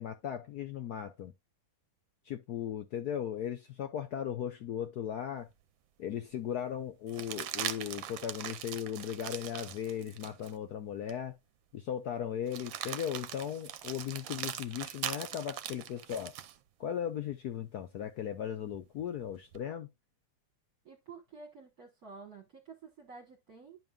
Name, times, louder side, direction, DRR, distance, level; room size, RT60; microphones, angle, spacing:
voice 1, 0.0-1.3 2.3-5.5 6.0-11.4 11.7-16.3 16.8-19.9, left 9 dB, 65° left, 1.0 m, -37 dB
sound 1, 5.5-5.6 7.1-10.5 11.1-11.2 12.5-16.6 18.7-19.6, right 11 dB, 75° right, 1.4 m, -41 dB
voice 2, 20.8-23.8, right 4 dB, 50° right, 1.7 m, -50 dB
10.5 x 5.3 x 2.4 m
omnidirectional pair, 2.2 m